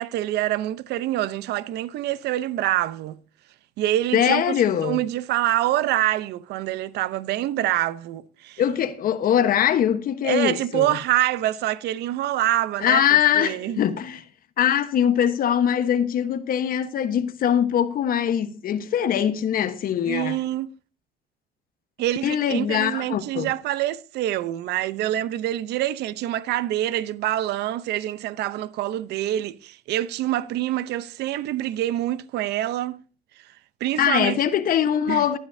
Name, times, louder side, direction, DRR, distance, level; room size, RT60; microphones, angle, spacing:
voice 1, 0.0-3.2 3.8-4.5 4.8-8.6 10.2-13.8 20.1-20.7 22.0-33.0 33.8-34.4 35.1-35.2, right 14 dB, 80° right, 0.8 m, -26 dB
voice 2, 4.1-5.0 8.6-10.9 12.8-14.2 14.6-20.4 22.2-23.5 34.0-35.4, left 9 dB, 60° left, 1.2 m, -22 dB
24.0 x 9.3 x 2.7 m
cardioid pair, 110°, 17 cm